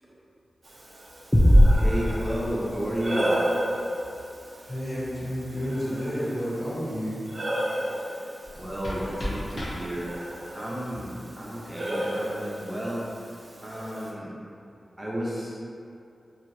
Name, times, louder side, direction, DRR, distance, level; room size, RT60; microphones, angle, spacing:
Breathing, 0.6-14.1, equal, 55° right, 0.4 m, -34 dB
sound 1, 1.3-3.0, equal, 15° left, 0.4 m, -19 dB
voice 1, 1.7-3.3 8.5-10.1 10.5-13.0 13.6-14.3 15.0-15.6, equal, 15° right, -6 dB, 0.7 m, -32 dB
voice 2, 4.6-7.2, equal, 45° left, -11 dB, 1.3 m, -31 dB
sound 2, 8.4-10.4, left 1 dB, 60° left, 0.7 m, -36 dB
2.9 x 2.4 x 2.6 m, 2.5 s
cardioid pair, 60°, 0 cm